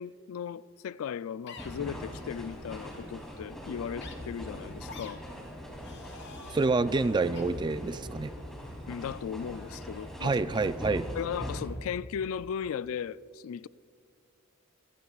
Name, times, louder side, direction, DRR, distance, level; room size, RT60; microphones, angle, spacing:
voice 1, 0.0-5.2 8.9-10.4 11.1-13.7, left 8 dB, 80° left, 0.3 m, -37 dB
sound 1, 1.5-1.7 2.6-2.8 4.0-4.1 4.9-5.1 5.8-6.7 7.3-7.4, left 5 dB, 55° left, 1.5 m, -47 dB
sound 2, 1.6-11.7, equal, ahead, 2.9 m, -41 dB
voice 2, 6.5-8.3 10.2-11.1, right 3 dB, 20° right, 0.3 m, -27 dB
24.5 x 17.0 x 2.4 m
head